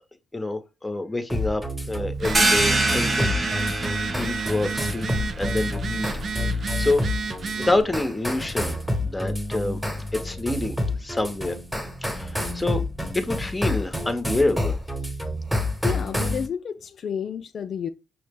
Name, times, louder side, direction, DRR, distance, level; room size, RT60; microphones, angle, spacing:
voice 1, 0.3-1.6 1.9-3.7 4.2-6.1 6.6-7.0 7.5-8.8 9.1-9.8 10.2-10.8 11.0-11.6 12.0-12.8 13.1-14.8, left 2 dB, 10° left, 0.7 m, -27 dB
sound 1, 1.3-16.5, left 1 dB, 5° right, 1.1 m, -29 dB
Telephone, 2.1-7.8, right 5 dB, 50° right, 0.4 m, -32 dB
sound 2, 2.3-7.7, right 2 dB, 30° right, 1.0 m, -27 dB
voice 2, 15.8-17.9, left 7 dB, 55° left, 0.3 m, -30 dB
5.8 x 2.1 x 3.4 m
cardioid pair, 90°, 0 cm